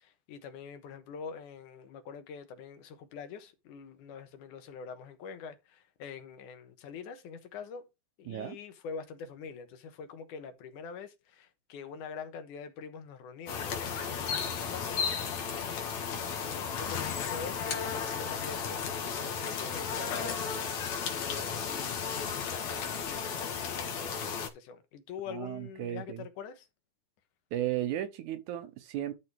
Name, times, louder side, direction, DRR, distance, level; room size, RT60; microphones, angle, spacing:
voice 1, 0.0-7.8 8.2-15.0 16.0-26.7, left 6 dB, 90° left, 2.7 m, -45 dB
voice 2, 8.3-8.6 25.3-26.3 27.5-29.1, right 12 dB, 80° right, 2.5 m, -35 dB
sound 1, 13.5-24.5, left 6 dB, 65° left, 2.7 m, -34 dB
12.0 x 4.2 x 4.7 m
omnidirectional pair, 3.5 m